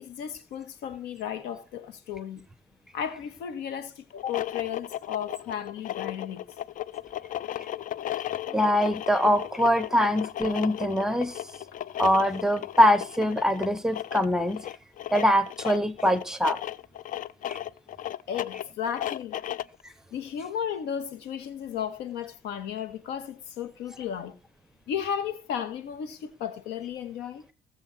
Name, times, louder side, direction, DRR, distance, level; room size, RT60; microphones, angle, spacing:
voice 1, 0.0-2.4 2.9-6.4 18.3-19.4 20.1-24.4 24.9-27.5, left 8 dB, 85° left, 1.9 m, -34 dB
sound 1, 4.1-19.8, left 12 dB, 50° left, 0.5 m, -35 dB
voice 2, 8.5-11.4 12.0-14.7 15.1-16.6 17.5-17.6, equal, 5° right, 1.2 m, -23 dB
19.0 x 7.0 x 4.4 m
cardioid pair, 110°, 17 cm